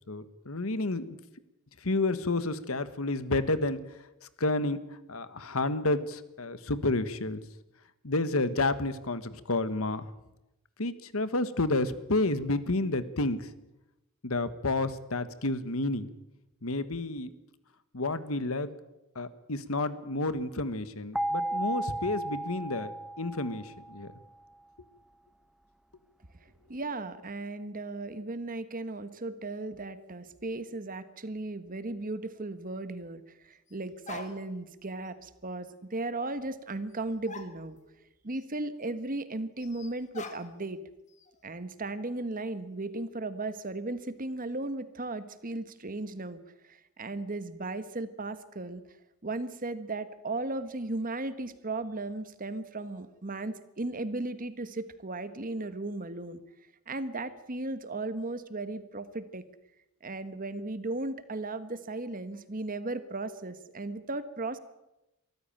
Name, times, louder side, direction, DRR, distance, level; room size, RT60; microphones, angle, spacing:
voice 1, 0.1-1.1 1.8-3.8 4.4-4.8 5.1-7.4 8.0-10.1 10.8-13.5 14.2-16.1 16.6-17.3 17.9-18.7 19.1-22.9 23.2-24.1, left 2 dB, 70° left, 13 dB, 1.4 m, -30 dB
sound 1, 21.1-24.1, right 1 dB, 5° right, 0.8 m, -34 dB
voice 2, 26.3-37.8 38.2-40.8 41.4-48.8 49.2-56.4 56.9-59.5 60.0-64.6, right 2 dB, 40° right, 12 dB, 1.3 m, -36 dB
sound 2, 32.1-32.2 33.7-33.8 34.1-34.7 35.0-35.1 36.9-37.0 37.3-38.1 38.3-38.4 39.6-40.8 41.1-41.5, left 4 dB, 35° left, 1.9 m, -46 dB
23.5 x 14.0 x 9.0 m, 0.94 s
head